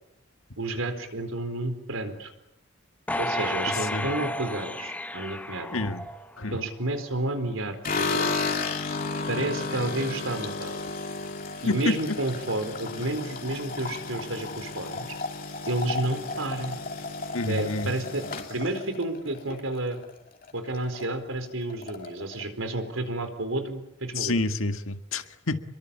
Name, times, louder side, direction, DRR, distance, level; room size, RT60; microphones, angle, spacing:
voice 1, 0.6-2.3 3.2-5.8 6.5-8.5 9.3-10.8 11.6-15.1 15.7-16.8 17.5-20.0 20.5-24.4, right 2 dB, 85° right, 8 dB, 4.4 m, -31 dB
sound 1, 3.1-6.5 7.0-7.1, left 1 dB, 5° left, 1.0 m, -32 dB
voice 2, 3.7-4.1 5.7-6.1 6.4-6.6 11.7-12.2 17.3-17.9 24.2-25.6, left 2 dB, 90° left, 8 dB, 1.8 m, -28 dB
sound 2, 7.8-20.1 20.4-21.1 21.3-21.4 21.7-22.4, left 3 dB, 45° left, 2.8 m, -33 dB
28.5 x 23.0 x 8.6 m, 0.84 s
head